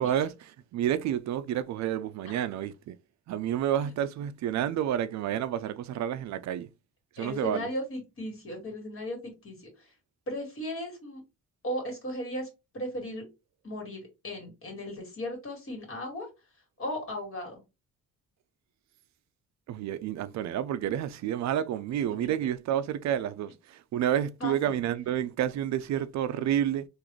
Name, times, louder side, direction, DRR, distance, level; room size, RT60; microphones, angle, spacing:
voice 1, 0.0-3.0 3.3-6.7 7.1-7.7 19.7-26.9, right 10 dB, 65° right, 0.4 m, -30 dB
voice 2, 7.2-9.9 10.3-11.2 11.6-12.5 12.7-13.2 13.6-16.3 16.8-17.6 24.4-24.8, left 1 dB, 45° left, 2.1 m, -36 dB
3.8 x 2.5 x 3.1 m
cardioid pair, 90°, 30 cm